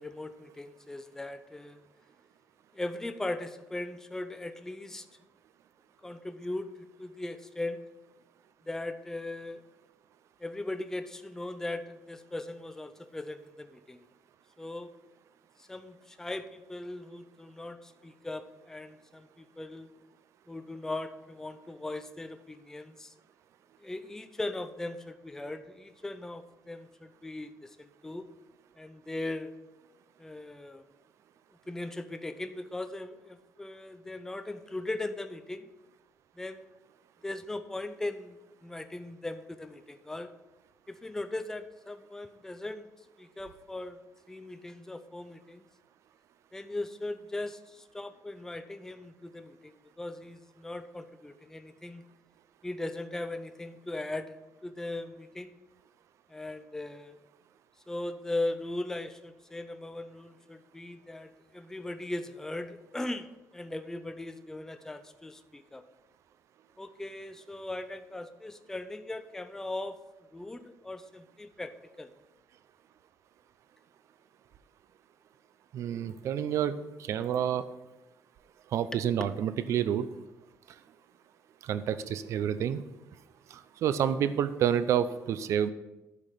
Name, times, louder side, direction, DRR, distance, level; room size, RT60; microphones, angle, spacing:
voice 1, 0.0-1.8 2.7-5.1 6.0-6.7 7.0-7.8 8.7-9.6 10.4-14.1 14.6-14.9 15.6-19.9 20.5-23.1 23.8-28.3 28.8-29.5 30.2-30.8 31.7-35.7 36.4-36.7 37.2-40.3 40.9-42.9 43.2-44.0 44.3-45.6 46.5-52.0 52.6-55.6 56.3-57.2 57.9-63.3 63.5-65.8 66.8-70.0 70.3-72.1 78.9-79.0, left 2 dB, 10° left, 9 dB, 0.5 m, -39 dB
voice 2, 75.7-76.7 77.1-77.6 78.7-80.1 81.7-82.8 83.8-85.7, right 9 dB, 65° right, 13 dB, 0.6 m, -28 dB
11.0 x 5.1 x 5.7 m, 1.0 s
cardioid pair, 120°, 5 cm